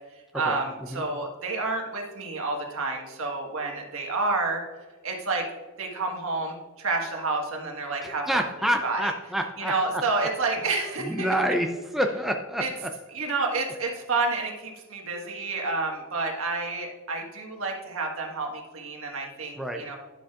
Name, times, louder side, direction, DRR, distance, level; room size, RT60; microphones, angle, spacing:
voice 1, 0.3-4.6 5.0-5.4 5.8-8.2 8.8-9.1 9.6-11.3 12.6-12.7 13.1-19.9, right 3 dB, 70° right, 0 dB, 1.6 m, -29 dB
voice 2, 8.0-10.0 11.0-12.9 19.6-19.8, equal, ahead, 3 dB, 0.4 m, -28 dB
10.5 x 7.1 x 2.4 m, 1.2 s
head